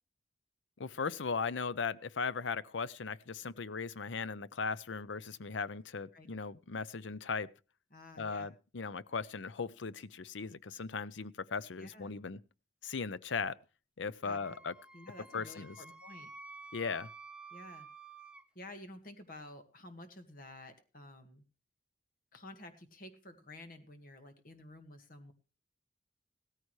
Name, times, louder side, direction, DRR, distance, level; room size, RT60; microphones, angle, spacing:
voice 1, 0.8-7.5 8.2-12.4 12.8-13.6 14.0-14.7 15.3-15.8 16.7-17.1, left 5 dB, 80° left, 0.7 m, -38 dB
voice 2, 7.9-8.5 11.8-12.1 14.2-14.4 14.9-16.3 17.5-17.9 18.6-21.4 22.3-25.3, left 1 dB, 50° left, 1.8 m, -51 dB
Wind instrument woodwind instrument, 14.3-18.4, right 4 dB, 5° right, 0.7 m, -52 dB
16.5 x 14.0 x 3.2 m
head